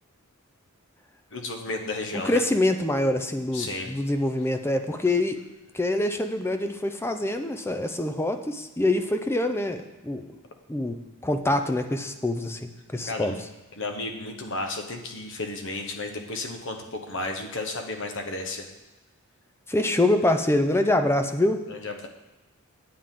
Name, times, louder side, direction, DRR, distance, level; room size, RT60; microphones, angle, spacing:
voice 1, 1.3-2.4 3.5-3.9 13.1-13.4 13.7-18.7 21.7-22.1, left 2 dB, 60° left, 4 dB, 1.1 m, -33 dB
voice 2, 2.1-5.4 5.7-10.3 10.7-11.0 11.2-13.3 19.7-21.6, left 1 dB, 10° left, 7 dB, 0.5 m, -25 dB
9.6 x 8.6 x 3.8 m, 1.1 s
head